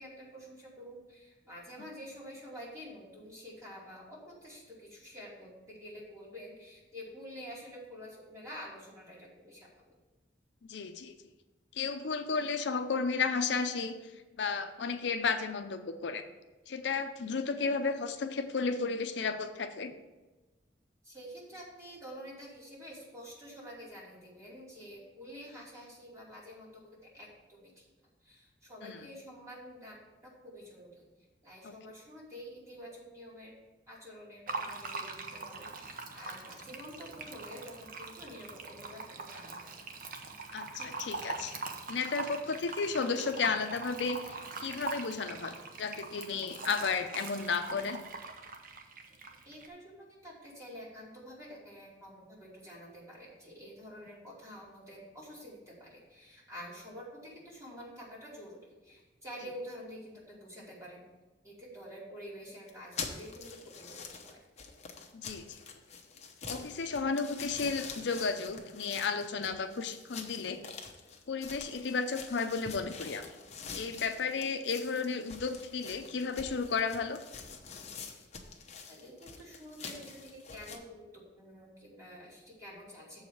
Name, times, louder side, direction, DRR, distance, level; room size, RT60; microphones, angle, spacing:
voice 1, 0.0-9.7 21.0-27.9 28.2-31.0 31.4-33.6 33.9-40.0 40.7-40.9 49.4-61.0 61.4-64.4 78.8-83.2, equal, 15° right, -5 dB, 2.7 m, -48 dB
voice 2, 10.7-11.1 11.7-14.0 14.4-16.3 16.7-19.9 28.8-29.0 31.6-31.7 40.5-40.7 41.0-41.6 41.9-48.0 65.1-65.6 66.5-70.6 71.3-73.3 73.7-77.2, left 5 dB, 75° left, 7 dB, 0.6 m, -33 dB
Fill (with liquid), 34.5-49.7, right 3 dB, 50° right, 0.8 m, -42 dB
sound 1, 62.7-80.8, left 5 dB, 40° left, 0.9 m, -46 dB
7.1 x 4.8 x 6.9 m, 1.1 s
head